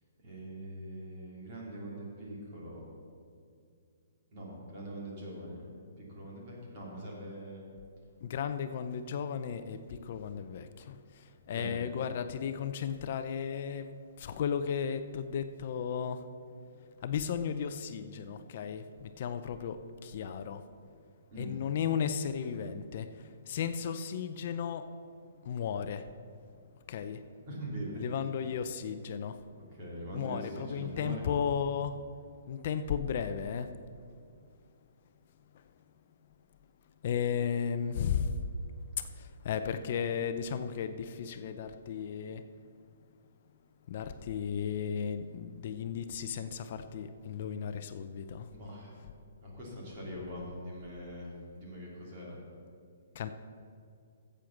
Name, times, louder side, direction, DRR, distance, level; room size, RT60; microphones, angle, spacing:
voice 1, 0.2-2.8 4.3-5.6 6.0-7.6 11.5-11.7 21.3-21.5 27.5-28.0 29.7-31.3 39.6-39.7 48.5-48.9 49.4-52.4, right 1 dB, 30° right, -4 dB, 2.9 m, -42 dB
voice 2, 8.2-16.3 17.0-20.7 21.4-24.9 25.4-26.1 26.9-27.2 28.0-29.4 30.1-32.0 32.5-33.7 35.5-35.6 37.0-38.4 39.0-42.5 43.9-48.5 53.1-53.3, left 7 dB, 40° left, 10 dB, 0.5 m, -35 dB
10.0 x 7.7 x 7.1 m, 2.4 s
hypercardioid pair, 175°, 0 cm